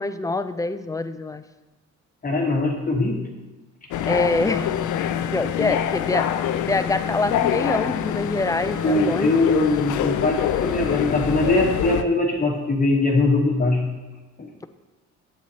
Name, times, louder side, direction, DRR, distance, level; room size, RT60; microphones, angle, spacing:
voice 1, 0.0-1.4 4.1-4.7 5.3-9.4, left 2 dB, 10° left, 11 dB, 0.4 m, -25 dB
voice 2, 2.2-3.2 8.8-13.8 14.4-14.5, left 2 dB, 30° left, 0 dB, 1.2 m, -21 dB
sound 1, 3.9-12.0, left 10 dB, 75° left, 0.5 m, -25 dB
8.2 x 7.8 x 2.8 m, 1.1 s
cardioid pair, 90°, 30 cm